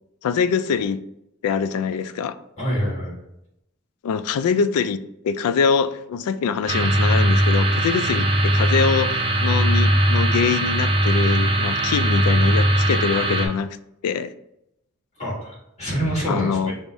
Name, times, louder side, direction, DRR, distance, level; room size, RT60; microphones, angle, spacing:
voice 1, 0.2-1.0 1.4-2.4 4.0-5.0 5.2-13.8 14.0-14.3 16.3-16.7, left 6 dB, 80° left, 14 dB, 0.3 m, -23 dB
voice 2, 2.6-3.2 15.2-16.7, equal, 30° left, -5 dB, 1.6 m, -26 dB
sound 1, 6.7-13.5, right 1 dB, 20° right, 0.5 m, -19 dB
5.3 x 2.0 x 4.6 m, 0.83 s
head